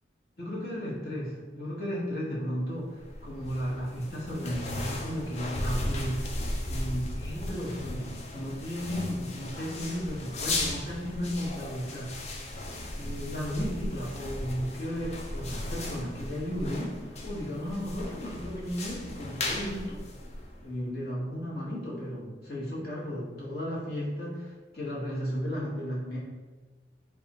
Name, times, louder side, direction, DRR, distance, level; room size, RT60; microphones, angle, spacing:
voice 1, 0.4-6.3 6.7-12.2 13.0-20.0 20.6-26.2, equal, 55° left, -6 dB, 1.2 m, -34 dB
sound 1, 2.9-20.8, left 1 dB, 35° left, 0.4 m, -36 dB
3.4 x 2.4 x 4.1 m, 1.3 s
head